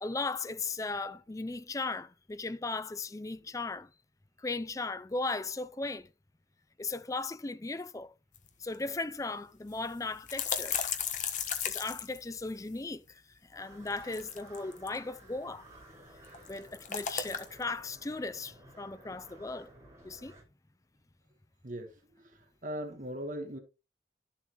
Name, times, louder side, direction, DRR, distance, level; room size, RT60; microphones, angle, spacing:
voice 1, 0.0-3.9 4.4-6.1 6.8-8.1 8.6-10.8 11.6-13.2 13.5-15.7 16.5-19.7 20.0-20.4, left 3 dB, 20° left, 0.4 m, -37 dB
sound 1, 8.4-8.5 8.7-8.8 9.7-12.8 13.9-15.0 16.2-17.6, left 8 dB, 45° left, 1.2 m, -35 dB
sound 2, 13.6-20.4, right 1 dB, 15° right, 5.6 m, -55 dB
voice 2, 21.6-23.6, equal, 45° right, 1.3 m, -40 dB
12.0 x 7.3 x 3.0 m
head